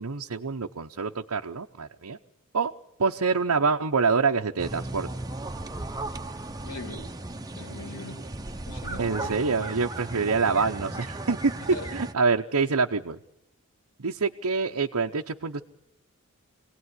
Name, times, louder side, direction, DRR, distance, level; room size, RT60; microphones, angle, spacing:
voice 1, 0.0-2.2 2.5-2.7 3.0-5.1 9.0-11.5 11.9-13.2 14.0-15.6, right 4 dB, 85° right, 2 dB, 0.9 m, -26 dB
sound 1, 4.6-12.1, right 2 dB, 15° right, 0.9 m, -36 dB
voice 2, 6.6-7.1 7.5-8.2 8.7-9.5 11.6-11.9, left 2 dB, 80° left, 5 dB, 3.6 m, -41 dB
26.5 x 18.0 x 9.8 m, 0.84 s
head